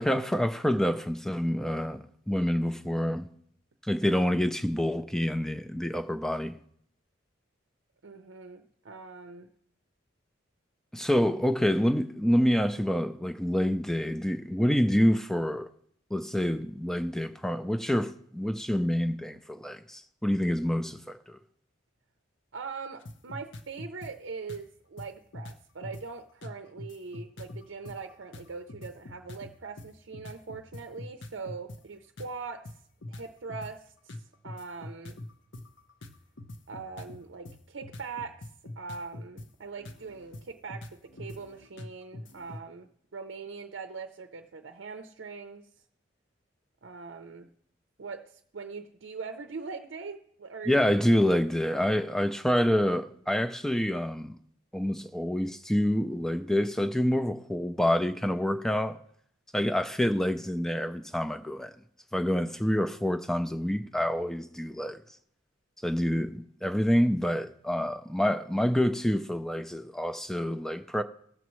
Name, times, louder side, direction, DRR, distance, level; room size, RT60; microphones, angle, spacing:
voice 1, 0.0-3.3 3.8-6.6 10.9-15.7 16.1-21.4 50.7-54.4 54.7-59.0 59.5-61.7 62.1-65.0 65.8-71.0, equal, ahead, 0.4 m, -27 dB
voice 2, 8.0-9.5 22.5-32.7 33.1-35.2 36.7-38.5 38.8-45.7 46.8-47.5 48.0-50.9, right 4 dB, 70° right, 0.6 m, -42 dB
sound 1, 23.0-24.1 24.5-24.6 25.0-25.1 25.3-26.0 26.4-31.8 32.2-32.3 32.6-33.7 34.1-39.5 39.8-42.6, left 1 dB, 70° left, 0.8 m, -43 dB
18.0 x 7.2 x 3.1 m
head